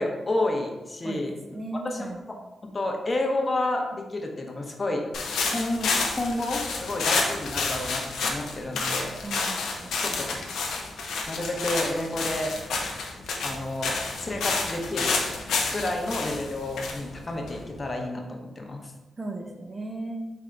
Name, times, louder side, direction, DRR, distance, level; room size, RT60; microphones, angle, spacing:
voice 1, 0.0-1.3 1.8-2.1 2.6-5.1 5.5-9.1 10.0-10.4 11.3-12.6 13.1-15.3 15.7-18.9, left 2 dB, 35° left, 2 dB, 0.8 m, -30 dB
voice 2, 1.0-2.2 9.2-10.5 19.2-20.3, right 2 dB, 40° right, 3 dB, 0.7 m, -37 dB
sound 1, 5.1-17.9, left 4 dB, 85° left, 0.6 m, -30 dB
3.8 x 3.6 x 3.3 m, 1.1 s
supercardioid pair, 50°, 0 cm